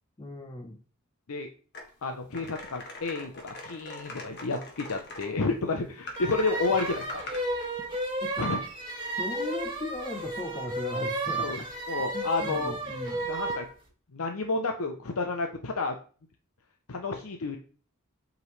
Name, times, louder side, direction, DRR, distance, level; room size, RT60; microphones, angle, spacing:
voice 1, 0.2-0.8 8.2-8.5 9.2-13.3, left 2 dB, 20° left, 3 dB, 0.7 m, -38 dB
sound 1, 1.7-1.9 2.3-5.3 6.1-7.4, left 2 dB, 55° left, 1.7 m, -42 dB
voice 2, 2.0-7.2 8.4-8.6 11.4-12.7 13.2-13.6 14.1-15.9 16.9-17.6, left 3 dB, 90° left, 5 dB, 0.7 m, -31 dB
sound 2, 6.2-13.7, right 2 dB, 25° right, 2.1 m, -33 dB
7.8 x 5.2 x 3.2 m, 0.40 s
head